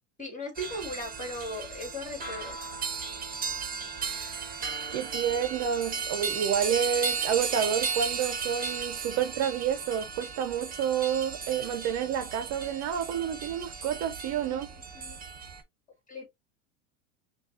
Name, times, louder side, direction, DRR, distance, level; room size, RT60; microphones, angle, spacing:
voice 1, 0.2-2.6 14.4-14.6 14.9-15.2 16.1-16.3, left 1 dB, 20° left, 2.1 m, -38 dB
sound 1, 0.6-15.6, right 5 dB, 20° right, 1.1 m, -35 dB
voice 2, 4.9-14.7, right 8 dB, 50° right, 0.7 m, -29 dB
5.6 x 2.4 x 2.6 m
hypercardioid pair, 95°, 38 cm